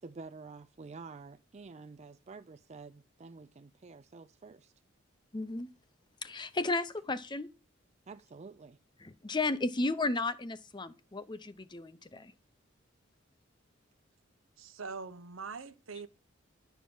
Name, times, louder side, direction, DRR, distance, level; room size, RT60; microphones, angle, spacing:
voice 1, 0.0-4.7 8.1-8.8, right 4 dB, 35° right, 0.4 m, -49 dB
voice 2, 5.3-5.7 6.2-7.5 9.0-12.3, left 2 dB, 25° left, 0.7 m, -34 dB
voice 3, 14.6-16.1, right 4 dB, 90° right, 0.9 m, -43 dB
11.5 x 4.6 x 7.1 m
head